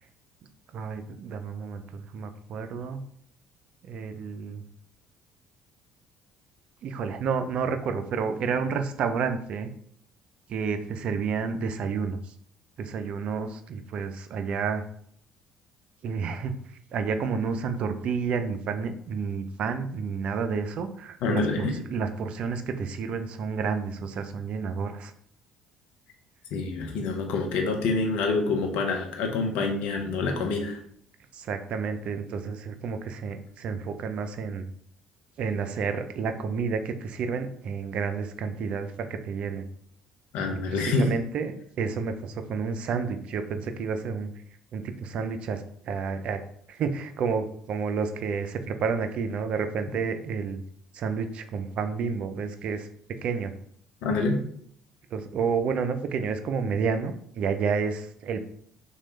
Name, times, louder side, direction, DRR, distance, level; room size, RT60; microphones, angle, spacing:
voice 1, 0.7-3.0 3.8-4.6 6.8-9.7 10.5-12.3 12.8-14.8 16.0-16.6 16.9-25.1 31.3-34.7 35.4-39.7 40.7-44.3 44.7-46.4 46.7-50.6 50.9-52.9 53.2-53.5 55.1-58.4, right 5 dB, 55° right, 8 dB, 0.3 m, -30 dB
voice 2, 21.2-21.7 26.5-30.8 40.3-41.1 54.0-54.3, left 3 dB, 65° left, 2 dB, 0.6 m, -26 dB
3.0 x 2.2 x 3.0 m, 0.65 s
hypercardioid pair, 55°, 2 cm